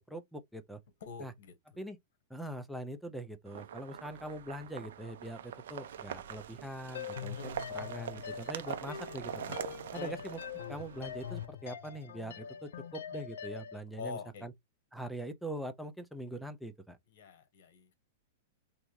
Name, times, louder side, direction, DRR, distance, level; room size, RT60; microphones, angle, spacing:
voice 1, 0.1-0.8 1.2-1.3 1.8-2.0 2.3-9.6 9.9-10.4 10.7-14.5 14.9-17.0, right 1 dB, ahead, 0.4 m, -42 dB
voice 2, 1.0-1.5 7.3-7.6 9.9-10.2 14.0-14.4 17.1-17.9, left 5 dB, 65° left, 1.1 m, -44 dB
sound 1, 3.5-11.5, right 9 dB, 75° right, 0.5 m, -44 dB
sound 2, 6.9-13.8, left 8 dB, 85° left, 0.4 m, -43 dB
3.4 x 2.6 x 3.0 m
supercardioid pair, 165°, 0 cm